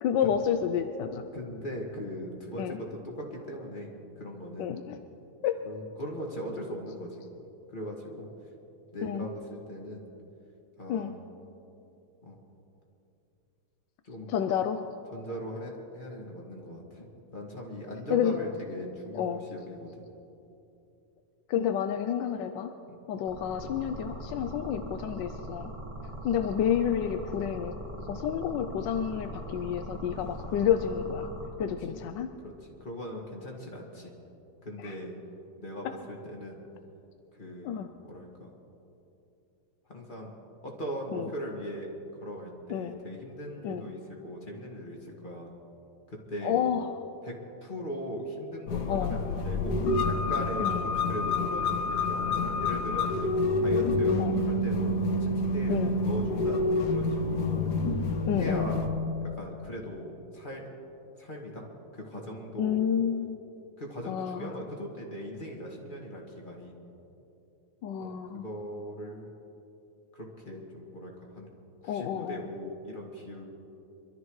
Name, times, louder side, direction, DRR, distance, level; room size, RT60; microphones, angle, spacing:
voice 1, 0.0-1.2 2.6-2.8 4.6-5.0 5.4-5.6 9.0-9.3 10.9-11.1 14.3-14.8 18.1-18.4 19.1-19.4 21.5-22.7 23.1-25.7 26.2-27.7 28.1-31.3 31.6-32.3 34.8-34.9 37.6-37.9 41.1-41.3 42.7-42.9 43.6-43.8 46.4-46.9 48.9-49.2 50.6-50.9 54.2-54.4 55.7-55.9 58.2-58.7 62.6-63.4 64.1-64.7 67.8-68.5 71.8-72.4, left 8 dB, 85° left, 7 dB, 1.3 m, -30 dB
voice 2, 1.3-4.7 5.6-7.2 7.7-8.3 8.9-10.0 10.8-11.1 12.2-12.4 14.0-14.3 15.1-20.0 22.9-23.0 30.2-30.7 31.6-32.0 32.6-34.1 34.6-35.1 35.6-36.6 37.3-38.5 39.9-40.3 40.6-41.9 42.2-45.5 46.1-46.6 47.2-47.4 47.6-49.8 50.0-54.9 55.2-57.7 58.3-58.8 59.2-60.6 61.2-61.7 61.9-62.8 63.8-66.7 68.0-69.3 70.1-71.5 71.8-73.4, equal, 30° left, -1 dB, 2.1 m, -39 dB
sound 1, 23.3-31.5, right 1 dB, 20° right, 1.7 m, -41 dB
sound 2, 48.7-58.9, left 2 dB, 70° left, 1.5 m, -28 dB
26.0 x 13.0 x 3.2 m, 2.8 s
omnidirectional pair, 1.9 m